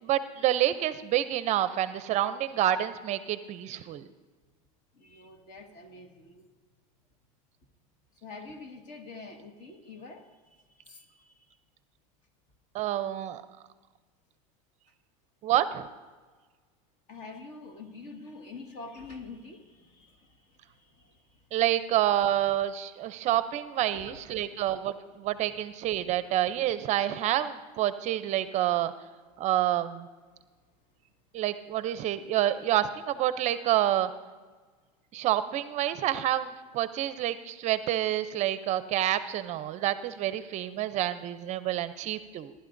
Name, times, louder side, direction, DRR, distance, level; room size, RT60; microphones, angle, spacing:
voice 1, 0.0-4.1 12.7-13.4 15.4-15.9 21.5-28.9 29.4-30.1 31.3-34.1 35.1-42.5, right 12 dB, 40° right, 13 dB, 0.5 m, -28 dB
voice 2, 4.9-6.4 8.2-11.6 17.1-21.4 23.1-23.3 23.9-24.2 24.5-24.6, left 3 dB, 45° left, 4 dB, 1.7 m, -46 dB
20.0 x 11.5 x 2.6 m, 1.4 s
supercardioid pair, 115°, 18 cm